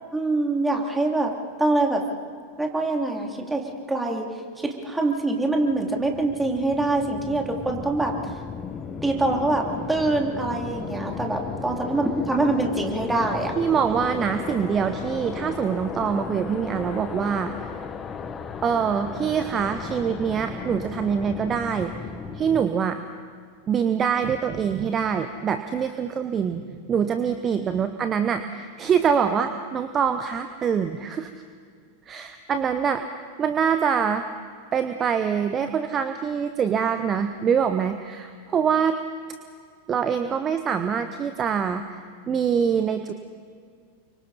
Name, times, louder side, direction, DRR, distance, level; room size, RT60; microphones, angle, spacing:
voice 1, 0.1-1.3 1.6-2.1 2.6-8.3 9.0-13.6, right 2 dB, 10° right, 1 dB, 3.1 m, -24 dB
sound 1, 5.5-22.7, left 5 dB, 20° left, 1.3 m, -35 dB
voice 2, 13.6-17.5 18.6-21.9 22.3-23.0 23.7-31.3 32.1-33.1 33.4-34.2 34.7-39.0 39.9-42.0 42.3-43.1, right 7 dB, 25° right, 9 dB, 1.0 m, -24 dB
29.5 x 24.5 x 4.3 m, 2.1 s
figure-of-eight pair, 90°, 0 cm